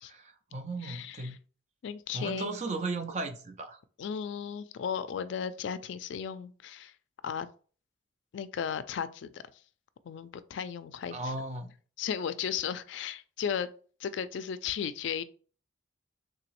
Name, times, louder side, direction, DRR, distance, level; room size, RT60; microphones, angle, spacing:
voice 1, 0.1-1.4 2.1-3.8 11.1-11.7, right 3 dB, 35° right, 0.5 m, -36 dB
voice 2, 0.8-1.4 1.8-2.5 4.0-6.9 7.2-7.5 8.3-9.4 10.0-11.3 12.0-13.7 14.0-15.2, left 7 dB, 70° left, 0.3 m, -35 dB
3.6 x 2.9 x 3.0 m
head